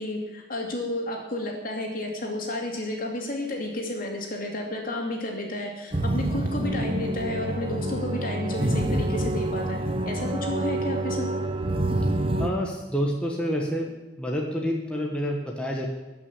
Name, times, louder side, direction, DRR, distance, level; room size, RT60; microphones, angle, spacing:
voice 1, 0.0-9.8 10.0-11.3, left 1 dB, 50° left, 0 dB, 2.7 m, -31 dB
sound 1, 5.9-12.5, right 1 dB, 30° right, 0.9 m, -27 dB
voice 2, 12.4-15.9, equal, 5° left, -1 dB, 1.3 m, -28 dB
13.5 x 6.1 x 8.4 m, 1.1 s
head